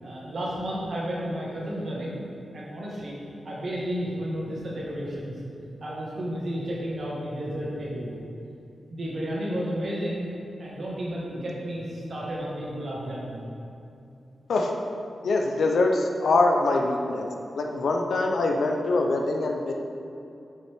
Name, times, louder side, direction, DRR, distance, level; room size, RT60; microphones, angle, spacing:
voice 1, 0.0-2.2 2.5-3.2 3.4-5.4 5.8-8.1 8.9-10.3 10.6-13.4, equal, 45° right, -6 dB, 1.6 m, -32 dB
voice 2, 15.2-17.3 17.6-19.7, left 2 dB, 70° left, 2 dB, 0.6 m, -23 dB
7.4 x 5.5 x 3.5 m, 2.7 s
wide cardioid pair, 175°, 0 cm